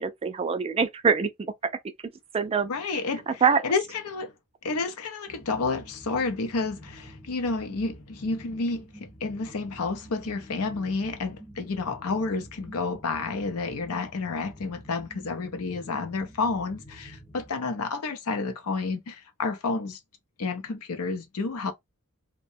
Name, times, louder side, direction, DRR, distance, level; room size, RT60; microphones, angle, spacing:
voice 1, 0.0-1.5 2.3-2.7 3.4-3.6, right 5 dB, 25° right, 0.3 m, -24 dB
voice 2, 2.7-4.3 4.6-20.0 20.4-21.7, left 4 dB, 75° left, 0.6 m, -30 dB
sound 1, 5.3-17.5, equal, 10° left, 0.7 m, -48 dB
2.7 x 2.1 x 2.5 m
head